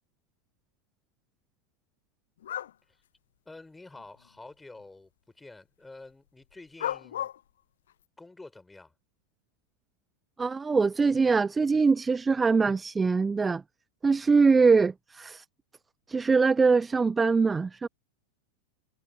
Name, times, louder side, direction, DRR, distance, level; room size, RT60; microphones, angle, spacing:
sound 1, 2.4-2.7 4.0-4.1 6.8-7.4, left 11 dB, 60° left, 0.6 m, -33 dB
voice 1, 3.5-7.3 8.2-8.9, left 2 dB, 10° left, 5.6 m, -49 dB
voice 2, 10.4-13.6 14.0-15.4 16.1-17.9, right 4 dB, 15° right, 0.4 m, -23 dB
figure-of-eight pair, 90°, 0 cm